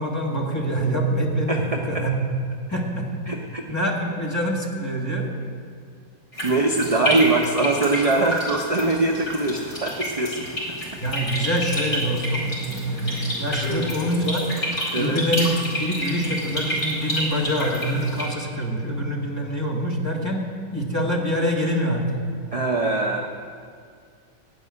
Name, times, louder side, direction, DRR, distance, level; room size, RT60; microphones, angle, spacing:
voice 1, 0.0-2.2 2.7-3.1 3.7-5.3 7.0-7.2 11.0-14.4 15.0-20.5 20.7-22.2, equal, 10° left, -3 dB, 1.8 m, -25 dB
voice 2, 1.5-1.8 3.3-3.6 6.4-10.5 13.6-13.9 14.9-15.2 22.5-23.2, right 2 dB, 30° right, 0 dB, 0.6 m, -22 dB
sound 1, 6.3-18.3, equal, 40° left, 4.6 m, -29 dB
16.5 x 5.5 x 9.8 m, 2.2 s
omnidirectional pair, 1.8 m